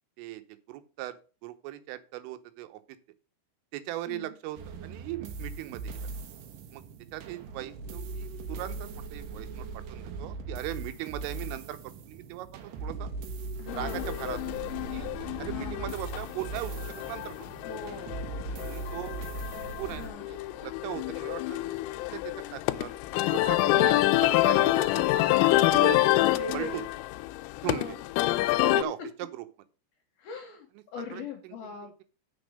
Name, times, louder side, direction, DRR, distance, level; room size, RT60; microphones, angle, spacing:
voice 1, 0.7-2.8 3.7-5.9 6.7-6.8 7.1-11.8 12.1-12.5 12.8-13.1 13.8-14.4 14.9-15.1 15.4-17.3 18.5-19.2 19.8-21.8 22.1-25.1 25.7-26.0 26.3-26.8 27.6-28.0 28.5-29.5 31.1-32.0, right 15 dB, 85° right, 10 dB, 3.5 m, -39 dB
sound 1, 4.6-20.1, right 3 dB, 70° right, 2.2 m, -39 dB
voice 2, 13.6-14.1 15.5-16.0 17.6-18.2 18.5-18.7 19.9-20.3 23.7-24.2 26.2-26.9 27.6-28.0 28.6-28.7 30.2-32.0, left 4 dB, 70° left, 4 dB, 2.4 m, -41 dB
sound 2, 13.7-28.8, left 17 dB, 85° left, 3.2 m, -27 dB
8.2 x 6.0 x 6.3 m, 0.35 s
omnidirectional pair, 5.7 m